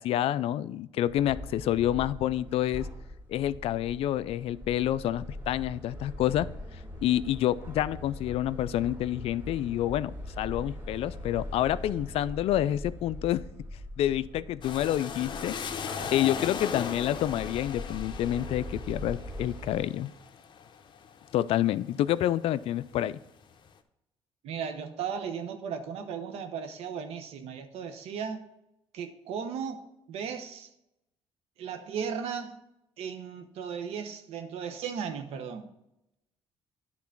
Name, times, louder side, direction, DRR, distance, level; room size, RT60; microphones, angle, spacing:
voice 1, 0.0-2.9 3.3-6.5 7.0-10.1 10.4-13.4 14.0-15.5 16.1-20.1 21.3-23.2, left 12 dB, 70° left, 17 dB, 0.4 m, -28 dB
sound 1, 1.1-19.9, left 1 dB, 25° right, 3.1 m, -42 dB
sound 2, 14.6-22.3 22.7-23.5, left 6 dB, 50° left, 0.8 m, -38 dB
voice 2, 24.4-28.5 28.9-30.7 31.6-32.6 33.0-35.7, right 7 dB, 80° right, 8 dB, 1.0 m, -36 dB
9.6 x 3.9 x 5.9 m, 0.86 s
cardioid pair, 85°, 10 cm